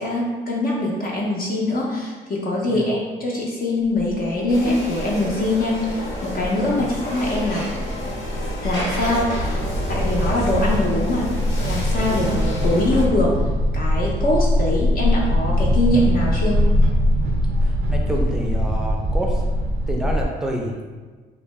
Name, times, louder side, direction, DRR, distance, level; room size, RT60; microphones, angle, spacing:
voice 1, 0.0-7.7 8.6-11.3 11.6-13.3 13.7-16.7, left 1 dB, 50° left, -4 dB, 0.5 m, -23 dB
sound 1, 3.8-20.2, equal, 90° right, 0.4 m, -22 dB
sound 2, 4.5-13.0, left 1 dB, 80° left, 0.9 m, -31 dB
voice 2, 17.6-19.4 19.9-20.7, equal, 5° right, 0 dB, 0.4 m, -28 dB
2.6 x 2.1 x 3.0 m, 1.4 s
cardioid pair, 90°, 20 cm